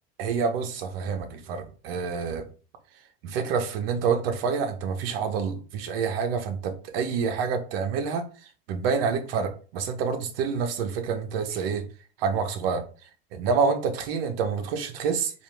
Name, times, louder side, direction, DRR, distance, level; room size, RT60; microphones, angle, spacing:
voice 1, 0.2-2.4 3.2-8.3 8.7-11.9 12.2-12.8 13.3-15.3, right 5 dB, 75° right, 0.9 m, -27 dB
4.5 x 2.6 x 3.4 m
hypercardioid pair, 90°, 29 cm